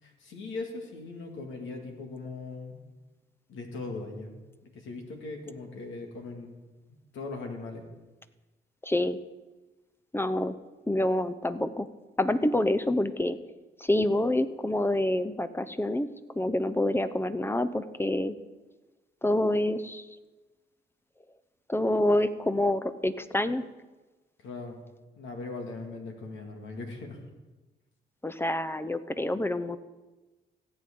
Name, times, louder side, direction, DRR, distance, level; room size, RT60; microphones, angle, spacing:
voice 1, 0.0-2.8 3.5-4.4 4.7-6.6 7.1-7.9 24.4-24.8 25.2-27.2, left 3 dB, 80° left, 3 dB, 2.1 m, -39 dB
voice 2, 8.8-9.2 10.1-10.6 10.9-11.9 12.2-13.4 13.8-16.1 16.4-18.4 19.2-20.1 21.7-23.6 28.2-29.8, left 1 dB, 10° left, 12 dB, 0.6 m, -27 dB
17.0 x 7.8 x 3.7 m, 1.2 s
supercardioid pair, 60°, 20 cm